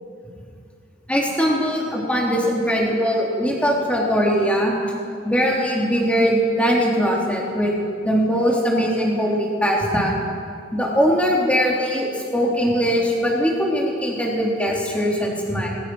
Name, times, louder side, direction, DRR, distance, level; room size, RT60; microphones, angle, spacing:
voice 1, 1.1-4.8 5.2-7.8 8.0-10.1 10.7-15.7, equal, 5° left, -3 dB, 3.7 m, -21 dB
26.0 x 21.0 x 6.5 m, 2.3 s
head